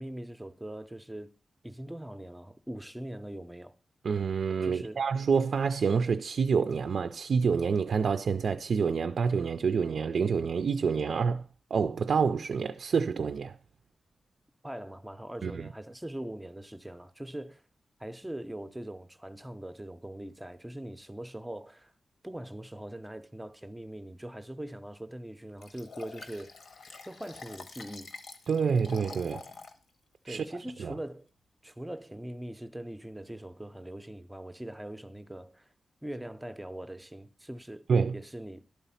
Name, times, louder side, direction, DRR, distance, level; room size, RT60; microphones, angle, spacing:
voice 1, 0.0-1.3 1.6-3.7 4.6-5.0 14.6-17.6 18.0-21.9 22.2-26.5 27.1-28.2 30.2-31.3 31.6-35.7 36.0-37.9 38.1-38.7, right 1 dB, 5° right, 0.5 m, -41 dB
voice 2, 4.0-11.4 11.7-13.6 15.4-15.7 28.5-29.4 30.3-30.5 30.8-30.9 37.9-38.2, right 5 dB, 65° right, 0.3 m, -27 dB
Liquid, 25.6-29.8 30.3-30.4, left 4 dB, 75° left, 1.0 m, -46 dB
12.0 x 4.1 x 5.6 m
wide cardioid pair, 180°, 0 cm